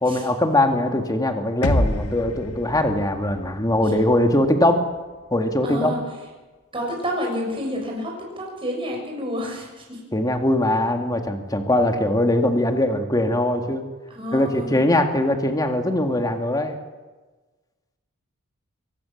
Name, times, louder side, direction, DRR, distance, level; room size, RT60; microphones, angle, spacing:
voice 1, 0.0-4.8 5.3-5.9 10.1-13.8 14.3-16.8, left 1 dB, 15° left, 5 dB, 2.1 m, -21 dB
sound 1, 1.6-5.5, left 1 dB, 90° left, 1.8 m, -29 dB
voice 2, 5.6-6.0 6.7-10.0 14.1-14.8, equal, 25° right, -1 dB, 6.3 m, -29 dB
23.5 x 17.5 x 7.2 m, 1.2 s
head